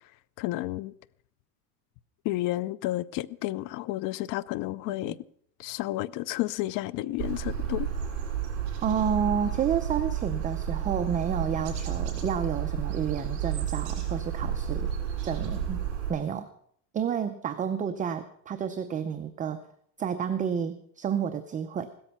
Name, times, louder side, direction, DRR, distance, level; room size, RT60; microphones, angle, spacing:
voice 1, 0.4-0.9 2.2-5.2 5.6-7.9, left 17 dB, 45° left, 0.6 m, -31 dB
sound 1, 7.2-16.1, right 8 dB, 55° right, 8.0 m, -31 dB
voice 2, 8.8-14.9 15.2-15.8 16.1-16.5 16.9-19.7 20.0-21.9, right 7 dB, 15° right, 0.5 m, -30 dB
16.5 x 13.5 x 5.7 m
supercardioid pair, 150°, 48 cm